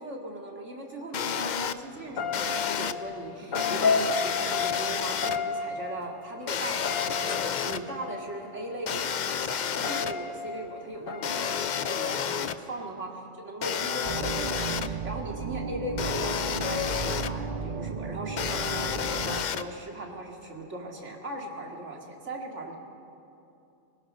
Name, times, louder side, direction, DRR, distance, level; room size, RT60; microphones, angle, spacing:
voice 1, 0.0-22.8, right 1 dB, 60° right, 1 dB, 2.6 m, -39 dB
sound 1, 1.1-1.7 2.3-2.9 3.5-5.4 6.5-7.8 8.9-10.1 11.2-12.5 13.6-14.9 16.0-17.3 18.4-19.6, left 8 dB, 55° left, 0.5 m, -30 dB
sound 2, 1.3-1.6 2.0-9.0 9.7-12.3, left 4 dB, 85° left, 1.7 m, -33 dB
sound 3, 14.0-19.4, right 5 dB, 45° right, 0.6 m, -34 dB
21.0 x 20.5 x 6.3 m, 2.7 s
omnidirectional pair, 1.4 m